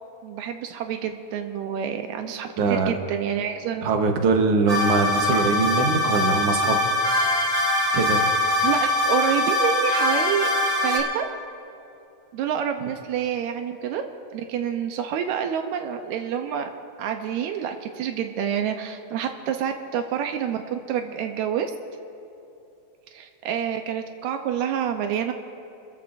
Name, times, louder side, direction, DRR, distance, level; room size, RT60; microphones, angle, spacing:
voice 1, 0.2-3.8 8.6-10.5 10.8-11.3 12.3-14.0 14.3-16.7 17.0-21.7 23.1-25.3, right 8 dB, 85° right, 5 dB, 2.1 m, -28 dB
voice 2, 2.6-2.9 3.8-6.9 7.9-8.3, right 4 dB, 60° right, 4 dB, 2.0 m, -22 dB
sound 1, 4.7-11.0, left 1 dB, 15° right, 3.6 m, -22 dB
27.5 x 14.5 x 2.6 m, 2.8 s
omnidirectional pair, 3.3 m